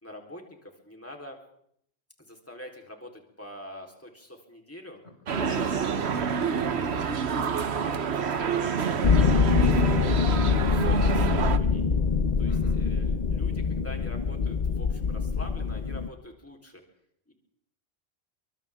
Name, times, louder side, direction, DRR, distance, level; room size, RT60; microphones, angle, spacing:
voice 1, 0.0-1.4 2.3-5.0 6.9-7.2 7.5-8.8 9.2-10.1 10.5-11.8 12.4-16.8 17.3-17.4, left 1 dB, 15° left, 1 dB, 3.9 m, -45 dB
voice 2, 5.3-6.8 12.5-12.8, equal, 90° left, 1 dB, 5.8 m, -39 dB
sound 1, 5.3-11.6, right 6 dB, 85° right, 1.3 m, -28 dB
sound 2, 9.0-16.1, left 5 dB, 45° left, 1.1 m, -24 dB
29.0 x 25.0 x 3.7 m, 0.69 s
omnidirectional pair, 1.1 m